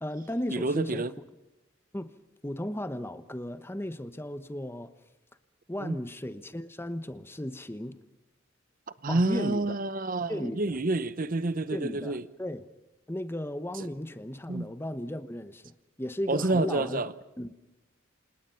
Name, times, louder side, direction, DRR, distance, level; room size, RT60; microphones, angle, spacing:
voice 1, 0.0-1.1 1.9-2.1 2.4-4.9 5.7-8.0 9.1-9.7 10.3-10.6 11.7-12.6 13.1-17.0 17.4-17.5, left 1 dB, 10° left, 1.0 m, -35 dB
voice 2, 0.5-1.1 5.8-6.0 9.0-12.3 13.8-13.9 14.5-14.7 16.3-17.1, right 2 dB, 45° right, 0.8 m, -28 dB
29.0 x 26.5 x 5.7 m
head